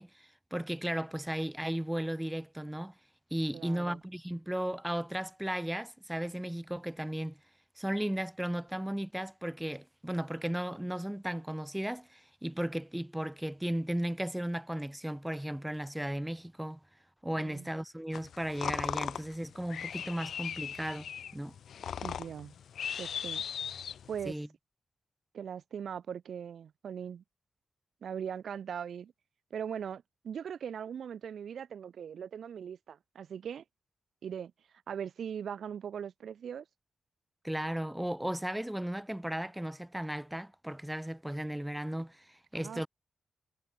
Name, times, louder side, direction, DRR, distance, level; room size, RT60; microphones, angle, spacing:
voice 1, 0.0-2.9 3.3-7.4 7.8-16.8 17.2-21.6 24.2-24.5 37.4-42.9, right 1 dB, 5° right, 4.6 m, -35 dB
voice 2, 3.5-4.0 17.4-17.7 22.0-22.5 23.0-23.4 24.1-24.4 25.3-27.2 28.0-29.1 29.5-33.6 34.2-34.5 34.9-36.7 42.5-42.9, right 8 dB, 75° right, 3.6 m, -40 dB
sound 1, 18.1-24.3, left 8 dB, 80° left, 6.5 m, -38 dB
cardioid pair, 80°, 0 cm